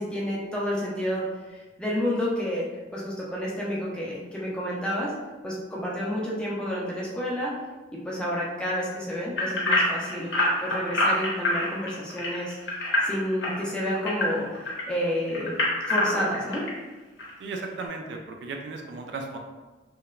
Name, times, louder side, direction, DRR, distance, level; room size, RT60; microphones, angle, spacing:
voice 1, 0.0-2.7 2.9-5.1 5.4-7.5 7.9-10.3 10.6-15.6 15.9-16.7, equal, 5° left, -6 dB, 0.5 m, -30 dB
sound 1, 9.4-14.8 15.3-16.7 17.2-17.3 17.8-17.9, left 1 dB, 80° left, 0.8 m, -26 dB
voice 2, 17.4-19.4, right 3 dB, 65° right, 2 dB, 0.3 m, -35 dB
2.9 x 2.0 x 2.3 m, 1.3 s
head